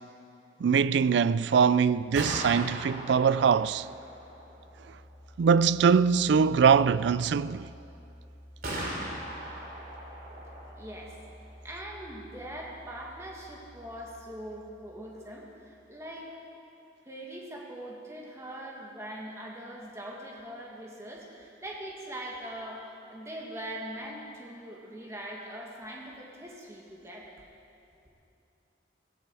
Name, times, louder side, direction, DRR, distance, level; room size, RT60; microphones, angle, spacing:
voice 1, 0.6-3.9 5.4-7.7, right 6 dB, 70° right, 0.3 m, -22 dB
Gunshot gunfire, 2.0-15.7, right 1 dB, 50° right, 3.0 m, -42 dB
voice 2, 10.7-11.1 11.6-16.3 17.1-27.3, right 1 dB, 15° right, 1.9 m, -42 dB
17.0 x 16.5 x 4.8 m
head